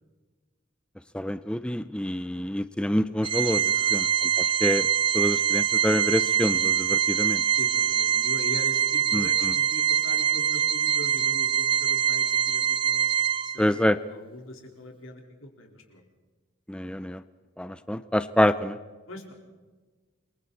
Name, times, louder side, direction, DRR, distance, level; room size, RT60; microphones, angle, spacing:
voice 1, 1.1-3.6 3.9-4.9 5.1-7.4 9.1-9.5 13.6-14.0 16.7-17.2 17.6-18.8, equal, 5° left, 12 dB, 0.5 m, -26 dB
Organ, 3.2-13.8, right 9 dB, 25° right, 0.7 m, -24 dB
voice 2, 3.7-4.2 5.2-5.4 7.6-16.0 19.1-19.3, left 1 dB, 90° left, 2 dB, 4.3 m, -42 dB
28.5 x 23.0 x 4.2 m, 1.3 s
head